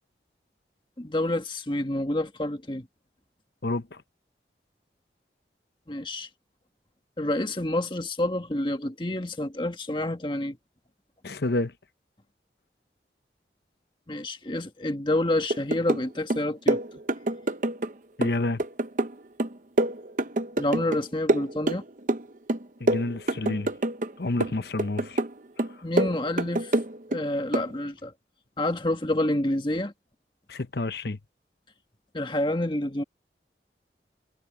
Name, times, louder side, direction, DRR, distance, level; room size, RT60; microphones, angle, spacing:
voice 1, 1.0-2.9 5.9-6.3 7.2-10.6 14.1-16.8 20.6-21.8 25.8-26.8 27.1-28.1 28.6-29.9 32.1-33.0, left 1 dB, 25° left, 1.5 m, -28 dB
voice 2, 3.6-4.0 11.2-11.7 18.2-18.6 22.8-23.7 24.2-25.2 25.6-25.7 30.5-31.2, left 2 dB, 65° left, 0.9 m, -29 dB
sound 1, 15.5-16.1 16.3-17.9 18.2-21.0 21.3-22.2 22.5-24.1 24.4-25.3 25.6-27.2 27.5-27.7, right 2 dB, 45° right, 0.8 m, -26 dB
head